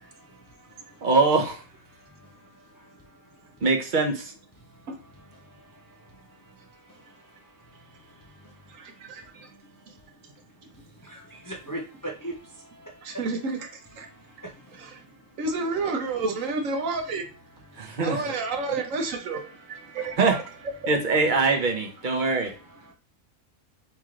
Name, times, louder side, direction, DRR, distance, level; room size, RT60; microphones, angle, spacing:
voice 1, 0.2-1.1 1.9-3.6 4.6-13.2 14.0-15.4 17.6-18.0 19.9-20.0 22.2-22.9, right 1 dB, 35° left, 0.3 m, -45 dB
voice 2, 1.0-1.6 3.6-4.3 17.8-18.2 20.2-20.3 20.9-22.5, right 3 dB, 40° right, 0.8 m, -23 dB
voice 3, 8.7-9.5 9.9-10.0 13.0-13.6 13.9-14.1 14.8-15.0 15.4-17.2 18.0-20.4, right 3 dB, 70° right, 1.1 m, -30 dB
3.1 x 3.0 x 3.7 m
omnidirectional pair, 1.4 m